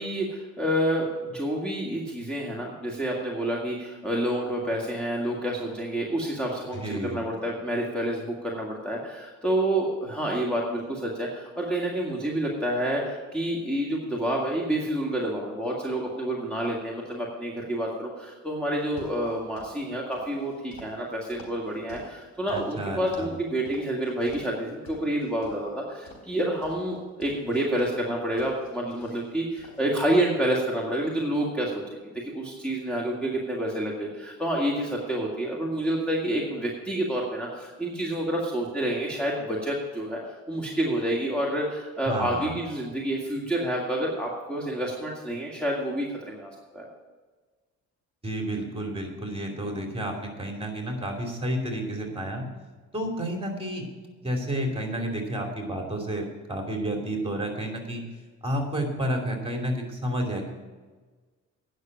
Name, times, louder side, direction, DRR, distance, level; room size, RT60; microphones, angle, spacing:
voice 1, 0.0-46.9, right 1 dB, 5° left, -4 dB, 1.9 m, -28 dB
voice 2, 6.7-7.2 22.5-23.3 42.1-42.6 48.2-52.4 52.9-53.9 54.2-58.0 58.4-60.5, right 1 dB, 20° right, 2 dB, 2.8 m, -30 dB
sound 1, 18.8-19.8 20.1-22.7 23.1-23.4 23.7-24.6 24.9-25.6 26.1-28.0 28.4-29.3 29.6-29.9, left 2 dB, 60° left, 4.1 m, -47 dB
9.7 x 6.5 x 8.8 m, 1.4 s
cardioid pair, 90°, 30 cm